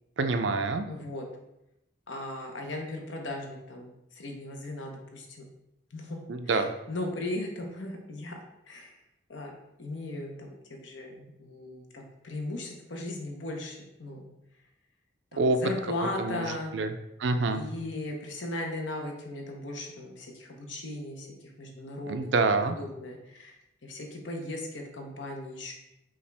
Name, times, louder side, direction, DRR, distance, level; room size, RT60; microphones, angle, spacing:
voice 1, 0.2-0.9 6.3-6.7 15.4-15.6 16.2-16.9 17.2-17.6 22.1-22.8, right 3 dB, 70° right, 8 dB, 0.4 m, -26 dB
voice 2, 0.9-1.2 2.1-5.4 5.9-8.4 8.7-9.0 9.3-9.5 9.8-14.3 15.3-16.7 17.5-22.3 22.8-25.7, left 1 dB, 80° left, 2 dB, 0.8 m, -37 dB
5.5 x 2.4 x 3.3 m, 0.86 s
head